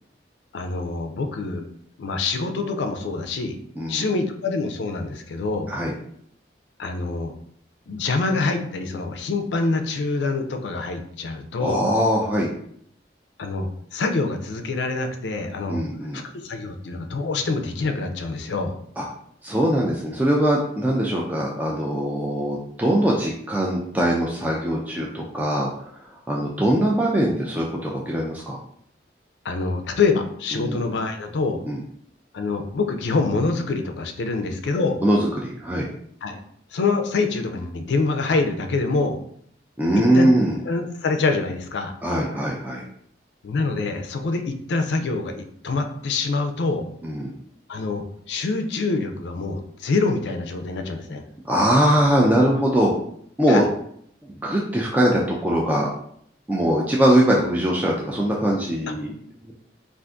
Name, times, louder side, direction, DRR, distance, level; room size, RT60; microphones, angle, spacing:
voice 1, 0.5-1.6 2.0-3.6 3.9-5.7 6.8-7.3 7.9-11.9 13.4-15.8 16.1-18.8 29.4-31.6 32.3-35.0 36.2-36.4 36.7-39.2 40.0-40.3 40.6-41.9 43.4-46.8 47.7-51.2 53.5-53.6, left 3 dB, 75° left, 6 dB, 0.4 m, -25 dB
voice 2, 3.8-4.1 5.7-5.9 11.6-12.5 15.7-16.2 19.0-19.1 19.4-25.7 26.3-28.6 30.6-30.8 31.7-31.8 35.0-35.9 39.8-40.6 42.0-42.8 47.0-47.3 51.5-52.9 53.4-53.6 54.4-55.9 56.5-59.1 59.5-59.6, right 1 dB, 10° right, -3 dB, 0.3 m, -21 dB
2.5 x 2.5 x 3.4 m, 0.67 s
head